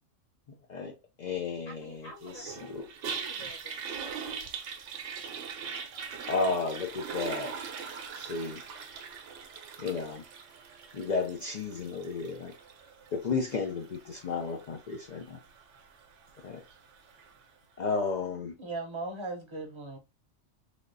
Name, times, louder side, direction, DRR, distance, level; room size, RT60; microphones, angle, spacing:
voice 1, 0.7-3.1 6.3-7.5 8.1-8.6 9.8-10.2 10.9-12.5 13.1-15.4 16.4-16.6 17.8-18.5, left 4 dB, 80° left, 0.4 m, -33 dB
voice 2, 1.6-2.7 3.0-4.4, right 1 dB, 55° left, 1.6 m, -50 dB
Toilet flush, 2.2-17.4, right 6 dB, 70° right, 0.9 m, -42 dB
voice 3, 18.6-20.0, right 3 dB, 30° right, 0.6 m, -37 dB
3.4 x 2.3 x 2.5 m
omnidirectional pair, 1.3 m